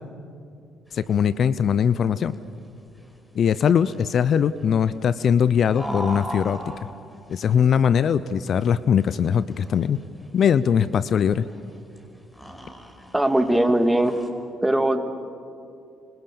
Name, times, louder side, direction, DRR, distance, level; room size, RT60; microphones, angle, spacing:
voice 1, 0.9-2.4 3.3-6.6 7.3-10.0 10.3-11.4, left 8 dB, 60° left, 16 dB, 0.6 m, -21 dB
sound 1, 0.9-14.3, equal, 10° left, 4.7 m, -40 dB
voice 2, 13.1-14.2 14.6-15.0, right 1 dB, 10° right, 7 dB, 2.4 m, -20 dB
28.5 x 25.0 x 7.1 m, 2.6 s
hypercardioid pair, 50°, 0 cm